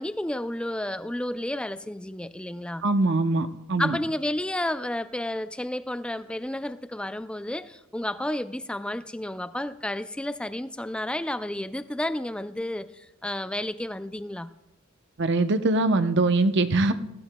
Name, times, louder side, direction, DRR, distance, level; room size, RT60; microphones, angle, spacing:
voice 1, 0.0-2.8 3.8-14.5, left 1 dB, 5° left, 0.4 m, -31 dB
voice 2, 2.8-4.0 15.2-16.9, right 2 dB, 60° right, 0.7 m, -22 dB
18.5 x 15.0 x 2.2 m
head